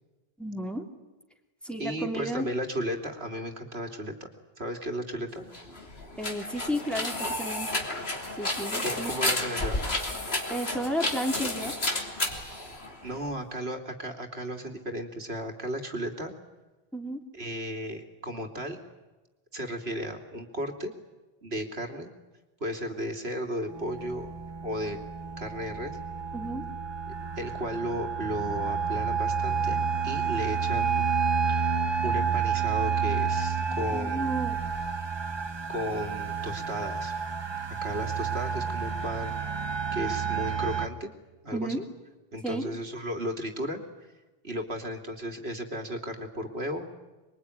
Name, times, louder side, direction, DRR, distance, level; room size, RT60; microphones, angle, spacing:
voice 1, 0.4-0.9 1.6-2.5 6.2-7.7 8.4-9.1 10.5-11.7 16.9-17.2 26.3-26.7 33.9-34.6 41.5-41.9 42.4-42.7, equal, ahead, 3 dB, 3.2 m, -32 dB
voice 2, 1.8-4.3 4.6-5.5 8.8-9.8 12.5-12.6 13.0-16.3 17.3-18.8 19.5-20.9 21.4-22.1 22.6-24.3 24.6-25.0 25.4-26.0 27.4-29.8 30.0-31.1 31.5-31.7 32.0-34.4 35.7-37.1 37.8-39.3 39.9-41.1 41.4-41.8 42.3-43.8 44.4-46.9, equal, 80° right, 5 dB, 3.3 m, -34 dB
sound 1, 5.5-13.3, left 2 dB, 80° left, 3.5 m, -32 dB
sound 2, 23.7-40.9, right 6 dB, 25° right, 1.0 m, -30 dB
26.5 x 22.5 x 9.9 m, 1.1 s
omnidirectional pair, 1.1 m